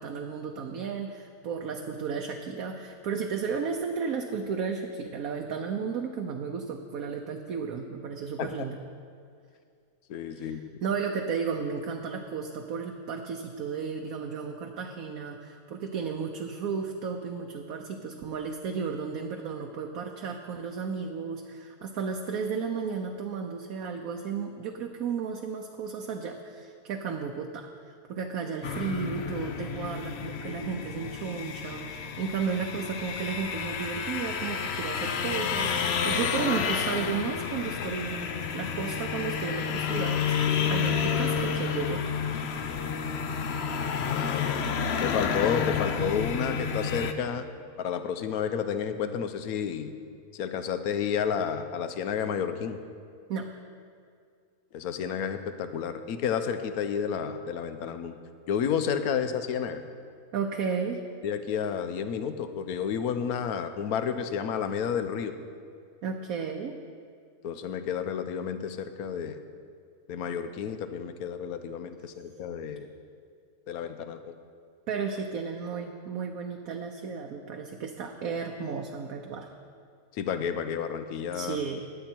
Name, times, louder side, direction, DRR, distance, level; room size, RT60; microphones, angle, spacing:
voice 1, 0.0-8.8 10.3-42.2 53.3-53.5 60.3-61.0 66.0-66.8 74.9-79.5 81.3-81.9, right 6 dB, 70° right, 3 dB, 1.2 m, -33 dB
voice 2, 10.1-10.6 44.0-44.6 45.0-47.5 47.8-49.9 50.3-52.8 54.7-58.2 58.5-59.8 61.2-65.3 67.4-69.4 70.1-72.9 73.7-74.3 80.1-81.6, left 7 dB, 75° left, 9 dB, 1.2 m, -31 dB
sound 1, 28.6-47.1, left 6 dB, 55° left, 0.8 m, -30 dB
17.5 x 10.5 x 4.5 m, 2.3 s
omnidirectional pair, 1.6 m